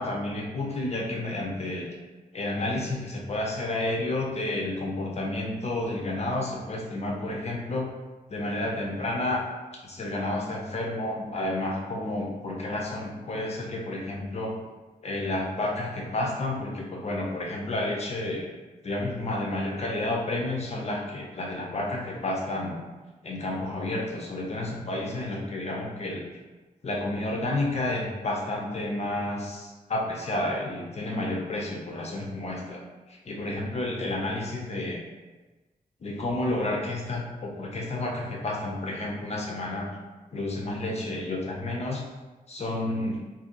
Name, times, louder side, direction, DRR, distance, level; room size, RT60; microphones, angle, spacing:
voice 1, 0.0-1.9 2.3-7.9 8.3-9.4 9.8-14.6 15.0-18.5 18.8-22.8 23.2-26.2 26.8-32.8 33.1-35.0 36.0-39.9 40.3-42.0 42.5-43.2, left 2 dB, 45° left, -1 dB, 0.6 m, -30 dB
2.7 x 2.6 x 3.7 m, 1.2 s
wide cardioid pair, 125°, 15 cm